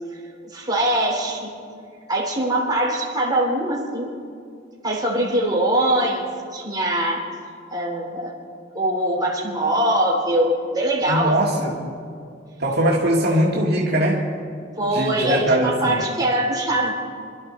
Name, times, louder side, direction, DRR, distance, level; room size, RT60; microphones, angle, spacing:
voice 1, 0.5-1.5 2.1-4.1 4.8-6.2 6.5-7.2 7.7-8.3 8.7-11.4 14.8-16.9, right 1 dB, 20° right, -2 dB, 3.3 m, -22 dB
voice 2, 11.1-11.9 12.6-14.2 14.9-16.0, right 1 dB, 55° right, -3 dB, 2.0 m, -21 dB
27.0 x 12.5 x 4.4 m, 2.4 s
head